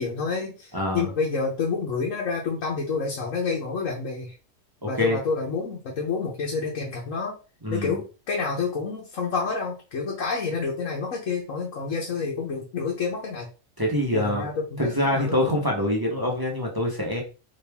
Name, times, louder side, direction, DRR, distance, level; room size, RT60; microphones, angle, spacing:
voice 1, 0.0-4.4 4.9-7.4 7.7-13.5 14.1-15.7, left 4 dB, 70° left, -2 dB, 1.4 m, -29 dB
voice 2, 0.7-1.1 4.8-5.2 7.6-8.0 13.8-14.4 14.8-17.2, left 1 dB, 20° right, -2 dB, 1.0 m, -25 dB
4.3 x 3.2 x 3.5 m, 0.33 s
omnidirectional pair, 1.4 m